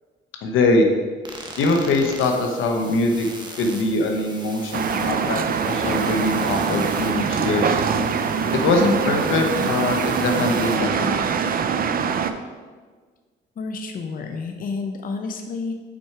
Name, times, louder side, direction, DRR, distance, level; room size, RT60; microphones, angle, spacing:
voice 1, 0.4-0.9 1.6-3.3 3.6-7.8 8.5-11.3, left 2 dB, 85° left, 3 dB, 0.9 m, -22 dB
sound 1, 1.3-10.8, right 2 dB, 20° right, 1.1 m, -40 dB
sound 2, 4.7-12.3, right 6 dB, 45° right, 0.5 m, -23 dB
voice 2, 13.6-15.7, left 4 dB, 45° left, 5 dB, 0.6 m, -30 dB
6.1 x 4.3 x 4.8 m, 1.5 s
cardioid pair, 90°, 20 cm